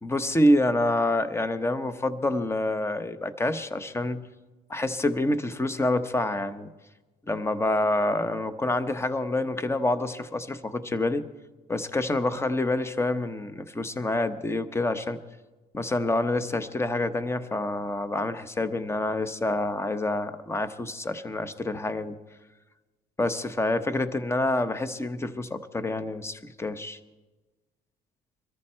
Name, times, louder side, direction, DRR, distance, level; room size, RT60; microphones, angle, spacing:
voice 1, 0.0-4.2 4.7-6.7 7.3-11.3 11.7-15.2 15.7-22.2 23.2-27.0, left 2 dB, 15° left, 12 dB, 0.9 m, -27 dB
23.0 x 14.0 x 4.4 m, 1.2 s
cardioid pair, 110°, 17 cm